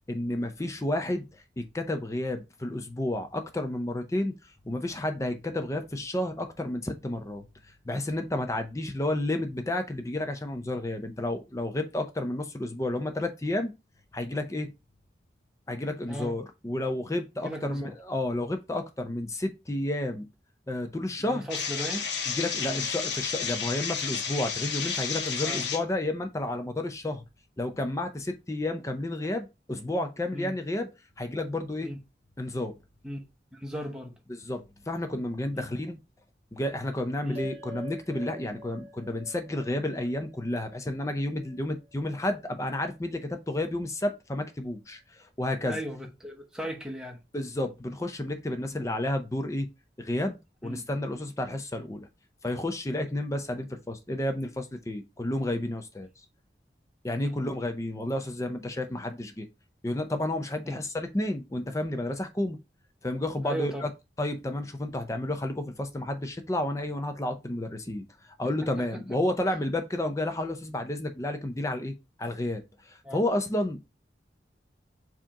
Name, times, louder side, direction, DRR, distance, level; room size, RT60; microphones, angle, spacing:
voice 1, 0.1-7.5 7.9-13.7 14.1-14.7 15.7-20.3 20.7-21.5 22.3-27.2 27.6-30.9 31.2-31.9 32.4-32.7 34.3-36.0 36.5-45.8 47.3-49.7 50.0-52.1 52.4-56.1 57.0-59.5 59.8-62.6 63.0-63.9 64.2-73.9, left 1 dB, 15° left, 0.5 m, -31 dB
voice 2, 17.4-18.0 21.2-22.0 22.7-22.9 25.4-25.6 30.3-30.5 31.8-32.0 33.0-33.2 33.5-34.2 35.5-35.7 37.2-37.4 45.6-47.2 48.7-48.9 50.6-50.9 57.2-57.4 60.6-60.8 63.4-63.9 68.4-69.2 73.0-73.2, equal, 5° right, 0.9 m, -37 dB
sound 1, 21.5-25.8, left 6 dB, 85° left, 0.9 m, -31 dB
sound 2, 37.3-42.0, equal, 35° right, 1.4 m, -47 dB
4.8 x 2.9 x 3.6 m
head